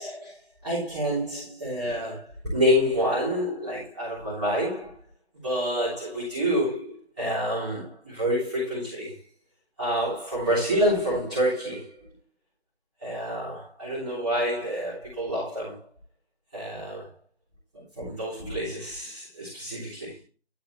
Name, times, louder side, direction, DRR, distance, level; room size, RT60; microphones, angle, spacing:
voice 1, 0.0-4.9 5.4-9.1 9.8-12.0 13.0-15.8 16.5-17.1 18.0-20.1, equal, ahead, 2.4 m, -28 dB
11.0 x 4.3 x 4.5 m
figure-of-eight pair, 175°, 33 cm